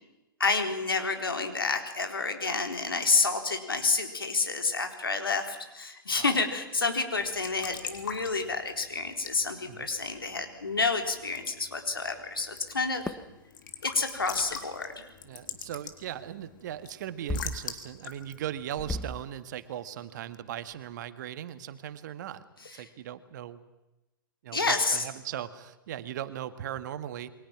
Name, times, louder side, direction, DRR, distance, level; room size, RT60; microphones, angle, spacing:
voice 1, 0.4-13.1 13.8-15.1 22.6-22.8 24.5-25.0, left 3 dB, 85° left, 5 dB, 3.8 m, -29 dB
Raindrop / Drip / Trickle dribble, 7.1-19.6, left 7 dB, 65° left, 3.3 m, -44 dB
sound 1, 13.1-13.3 14.5-14.6 15.9-16.1 17.3-17.8 18.1-18.2 18.8-19.3 19.9-20.0 20.3-20.4 20.7-21.0, left 1 dB, 10° left, 1.3 m, -35 dB
voice 2, 15.2-22.5 22.7-23.6 24.4-27.3, right 11 dB, 55° right, 12 dB, 1.8 m, -38 dB
29.0 x 23.5 x 6.0 m, 0.99 s
figure-of-eight pair, 110°, 12 cm